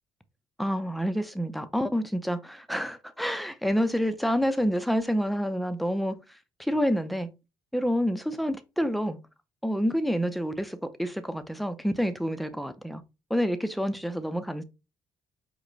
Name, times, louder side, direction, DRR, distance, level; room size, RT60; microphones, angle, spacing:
voice 1, 0.6-6.2 6.6-7.3 7.7-9.2 9.6-13.0 13.3-14.6, equal, ahead, 0.5 m, -28 dB
4.8 x 2.1 x 3.9 m
cardioid pair, 85°, 8 cm